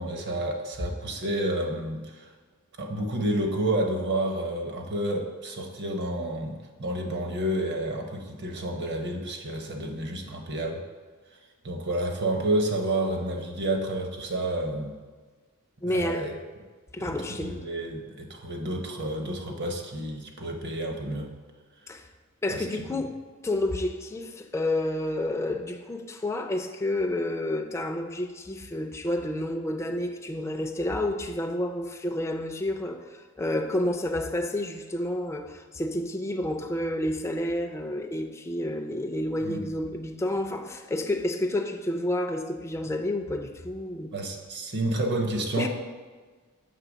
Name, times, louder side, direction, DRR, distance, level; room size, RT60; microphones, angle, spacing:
voice 1, 0.0-2.3 2.8-10.8 11.6-14.9 15.8-16.3 17.0-21.3 22.5-23.0 39.4-39.7 44.1-45.7, right 1 dB, 55° right, 0.9 m, -30 dB
voice 2, 15.8-16.3 16.9-17.5 21.9-22.1 22.4-23.2 23.4-44.1 45.6-45.7, left 1 dB, 15° left, 0.4 m, -30 dB
6.7 x 3.3 x 6.1 m
head